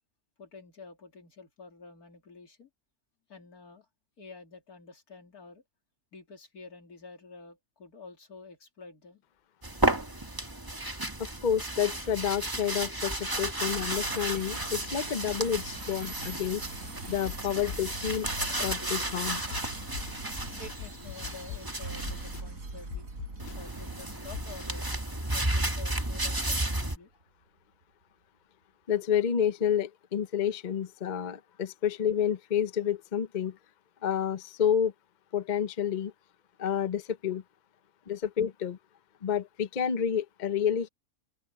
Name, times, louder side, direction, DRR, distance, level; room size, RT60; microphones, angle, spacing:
voice 1, 0.4-2.7 3.3-3.9 4.2-5.6 6.1-9.2 20.6-23.1 23.5-24.9 25.3-27.2, left 4 dB, 85° left, 3.2 m, -49 dB
sound 1, 9.6-22.4 23.4-27.0, right 1 dB, 15° right, 1.7 m, -33 dB
voice 2, 11.4-16.6 17.1-18.3 18.6-19.4 28.9-33.6 34.0-34.9 35.3-36.1 36.6-37.4 38.1-38.8 39.2-40.9, left 8 dB, 40° left, 0.8 m, -29 dB
sound 2, 13.7-27.0, right 3 dB, 65° right, 3.9 m, -44 dB
sound 3, 17.2-17.3 17.7-17.9 18.4-19.0 19.5-19.6 19.9-20.1 20.6-21.6 22.1-22.4 22.9-23.5 24.3-24.7, left 11 dB, 65° left, 0.9 m, -39 dB
open air
omnidirectional pair, 1.5 m